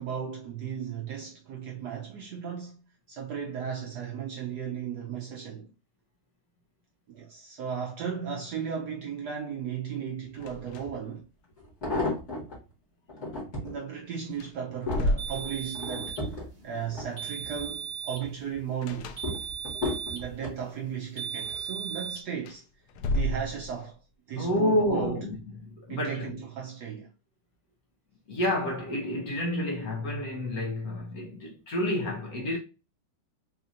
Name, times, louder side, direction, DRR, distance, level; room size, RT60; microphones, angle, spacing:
voice 1, 0.0-2.8 3.1-5.7 7.1-11.3 13.6-16.2 16.6-19.2 20.1-22.7 23.1-24.0 24.3-25.2 25.9-27.1, right 7 dB, 75° right, 1.0 m, -35 dB
sound 1, 10.3-11.2 11.5-11.6 13.8-13.9 14.3-16.0 18.8-19.8 22.3-24.0, equal, 85° left, 1.4 m, -32 dB
sound 2, 10.8-10.9 11.6-12.6 13.1-13.7 14.3-17.7 18.1-18.6 19.2-20.6 21.3-21.7 22.0-22.1, left 2 dB, 35° left, 1.8 m, -34 dB
sound 3, 15.2-16.3 17.2-18.3 19.2-20.3 21.2-22.2, right 7 dB, 50° right, 1.5 m, -37 dB
voice 2, 24.4-26.3 28.3-32.6, left 1 dB, 60° left, 1.1 m, -29 dB
4.2 x 2.8 x 2.4 m
omnidirectional pair, 2.3 m